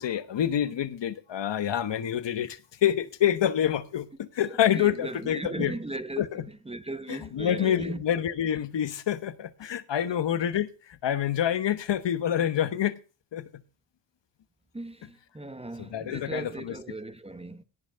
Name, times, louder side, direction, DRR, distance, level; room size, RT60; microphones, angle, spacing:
voice 1, 0.0-5.7 6.2-6.4 7.1-12.9 13.3-13.6 15.8-16.7, left 10 dB, 75° left, 1.2 m, -27 dB
voice 2, 4.4-8.0 10.1-10.2 14.7-17.6, right 2 dB, 15° right, 0.9 m, -38 dB
17.5 x 6.0 x 5.6 m
wide cardioid pair, 100°, 43 cm